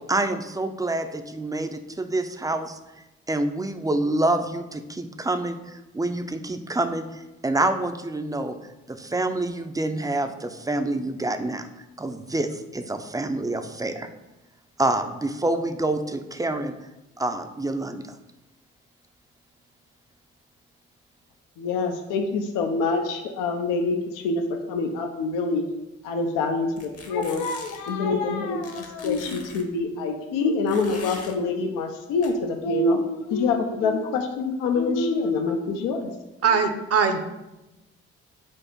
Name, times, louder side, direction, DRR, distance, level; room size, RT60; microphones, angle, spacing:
voice 1, 0.1-2.8 3.3-8.6 8.9-11.7 12.0-14.1 14.8-16.7 17.2-18.0, right 2 dB, 10° right, 8 dB, 0.4 m, -27 dB
voice 2, 21.6-24.4 24.7-25.6 26.0-36.1, left 3 dB, 80° left, 4 dB, 0.5 m, -25 dB
sound 1, 26.8-27.9 28.6-29.6 30.7-31.3 32.2-32.3, left 3 dB, 50° left, 0.9 m, -41 dB
voice 3, 36.4-37.2, right 6 dB, 50° right, 8 dB, 0.7 m, -21 dB
4.4 x 2.4 x 4.4 m, 0.99 s
hypercardioid pair, 45°, 32 cm